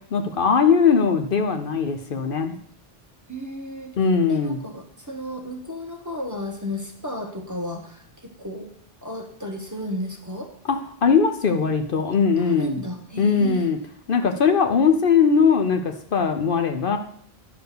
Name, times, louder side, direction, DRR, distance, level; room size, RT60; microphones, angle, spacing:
voice 1, 0.1-2.6 4.0-4.7 10.7-12.8 13.2-13.8 14.1-17.0, left 5 dB, 60° left, 6 dB, 0.9 m, -20 dB
voice 2, 3.3-3.9 4.3-8.7 9.0-10.5 12.4-13.7, left 1 dB, 20° right, 2 dB, 1.2 m, -33 dB
11.0 x 4.6 x 6.7 m, 0.63 s
omnidirectional pair, 1.1 m